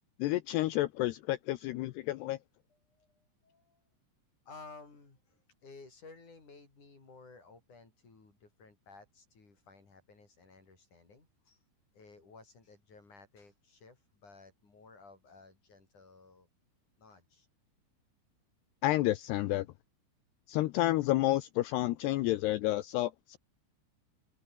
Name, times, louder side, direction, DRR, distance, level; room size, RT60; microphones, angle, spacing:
voice 1, 0.2-2.4 18.8-19.7 20.5-23.4, left 16 dB, 90° left, 2.3 m, -30 dB
voice 2, 2.7-3.8 4.5-11.6 11.9-16.5 17.0-17.5, left 3 dB, 40° left, 7.7 m, -56 dB
open air
omnidirectional pair, 5.8 m